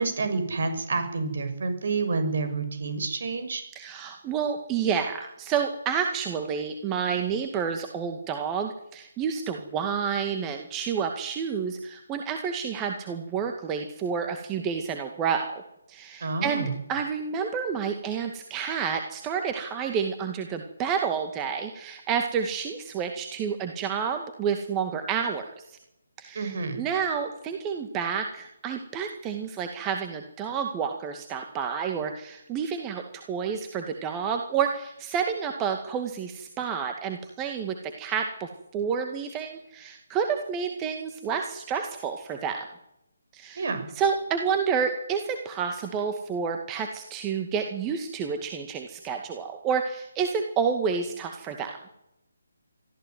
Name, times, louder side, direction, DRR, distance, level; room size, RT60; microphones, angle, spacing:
voice 1, 0.0-3.6 16.2-16.8 26.3-26.8 43.5-43.9, right 4 dB, 55° right, 9 dB, 6.7 m, -29 dB
voice 2, 3.8-15.5 15.9-25.6 26.2-42.7 43.3-43.7 44.0-51.8, right 6 dB, 20° right, 5 dB, 2.1 m, -29 dB
24.0 x 15.0 x 9.5 m, 0.85 s
figure-of-eight pair, 150°, 0 cm